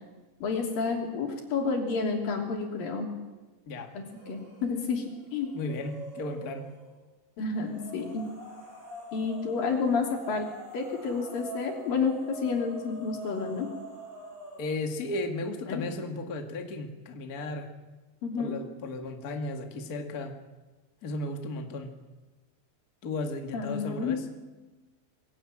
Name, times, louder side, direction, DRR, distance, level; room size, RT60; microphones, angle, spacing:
voice 1, 0.4-3.1 3.9-5.0 5.3-5.5 7.4-8.3 9.1-10.5 10.7-13.7 15.7-15.8 18.2-18.6 23.5-24.2, left 4 dB, 85° left, 1 dB, 4.8 m, -30 dB
sound 1, 4.1-4.7 5.0-6.9 7.6-14.8, equal, 85° right, 8.2 m, -44 dB
voice 2, 5.5-6.7 14.6-17.7 18.4-20.4 21.0-22.0 23.0-24.3, left 2 dB, 35° left, 4 dB, 1.9 m, -35 dB
22.5 x 16.5 x 8.8 m, 1.2 s
omnidirectional pair, 3.9 m